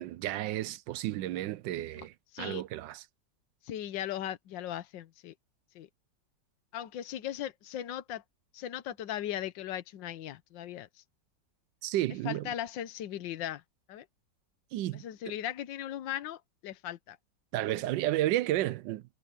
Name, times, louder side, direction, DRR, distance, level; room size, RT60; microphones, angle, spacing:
voice 1, 0.0-3.0 11.8-12.5 14.7-15.3 17.5-19.2, right 14 dB, 80° right, 1.3 m, -32 dB
voice 2, 3.6-5.3 5.7-5.9 6.7-8.2 8.5-11.0 12.2-13.6 13.9-14.0 14.9-17.2, left 11 dB, 85° left, 1.6 m, -38 dB
omnidirectional pair, 2.0 m